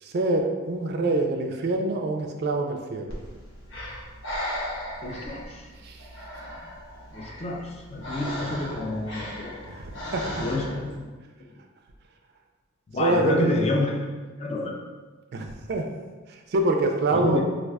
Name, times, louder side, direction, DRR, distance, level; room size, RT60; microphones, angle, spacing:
voice 1, 0.0-3.2 5.8-6.0 9.7-10.2 13.0-13.6 15.3-15.9 16.5-17.4, right 2 dB, 50° right, 3 dB, 0.3 m, -25 dB
Breathing, 3.1-11.0, equal, 60° left, 0.8 m, -37 dB
voice 2, 5.0-5.7 7.1-9.7 10.4-11.1 11.4-11.5 12.9-14.8 17.1-17.4, left 1 dB, 30° left, 0 dB, 0.3 m, -29 dB
4.6 x 2.3 x 2.2 m, 1.3 s
head